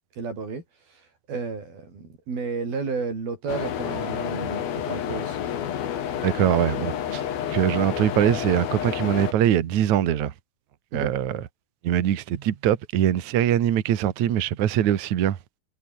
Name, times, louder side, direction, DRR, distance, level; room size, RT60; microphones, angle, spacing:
voice 1, 0.2-0.6 1.3-5.4 10.9-11.1, right 4 dB, 45° right, 8.3 m, -32 dB
sound 1, 3.5-9.3, left 9 dB, 55° left, 3.6 m, -29 dB
voice 2, 6.2-7.2 7.5-10.3 10.9-11.4 11.8-15.4, right 11 dB, 70° right, 1.7 m, -22 dB
omnidirectional pair, 5.9 m